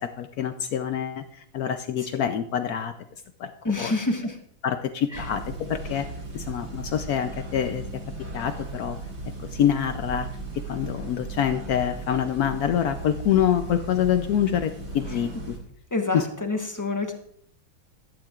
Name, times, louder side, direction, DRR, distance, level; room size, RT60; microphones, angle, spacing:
voice 1, 0.0-2.9 3.4-3.5 3.8-3.9 4.6-6.1 6.3-7.8 8.3-9.0 9.4-10.3 10.7-15.6 16.1-16.3, left 9 dB, 80° left, 9 dB, 0.8 m, -26 dB
voice 2, 3.6-4.4 5.1-5.3 15.1-15.2 15.9-17.1, left 2 dB, 20° left, 4 dB, 0.5 m, -27 dB
sound 1, 5.1-15.6, right 2 dB, 35° right, 2.1 m, -37 dB
15.0 x 12.0 x 2.4 m, 0.67 s
omnidirectional pair, 2.2 m